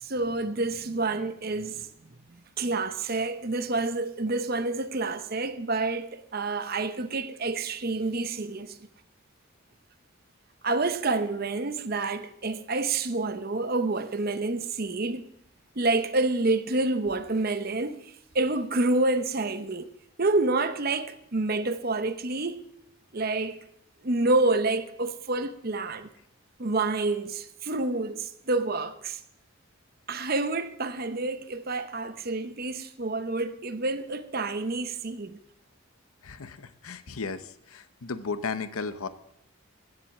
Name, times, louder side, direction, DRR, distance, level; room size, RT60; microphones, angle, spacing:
voice 1, 0.0-1.9 2.6-8.8 10.6-15.2 15.8-19.9 20.2-22.6 23.1-23.6 24.0-26.1 26.6-29.2 30.1-35.4, right 2 dB, 45° right, 0.8 m, -28 dB
voice 2, 36.2-39.1, left 4 dB, 80° left, 0.8 m, -35 dB
16.0 x 7.8 x 7.2 m
head